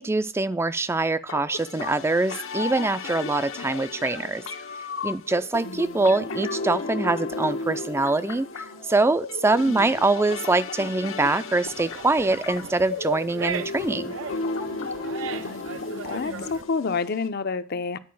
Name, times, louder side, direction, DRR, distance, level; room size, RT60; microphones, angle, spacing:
voice 1, 0.0-4.4 5.0-14.1, right 2 dB, 15° right, 0.4 m, -24 dB
sound 1, 1.3-17.3, left 3 dB, 85° left, 1.1 m, -34 dB
voice 2, 5.6-6.1 9.6-9.8 15.4-18.0, left 4 dB, 50° left, 0.6 m, -30 dB
sound 2, 11.6-16.6, right 6 dB, 70° right, 0.5 m, -38 dB
10.5 x 4.6 x 7.6 m
head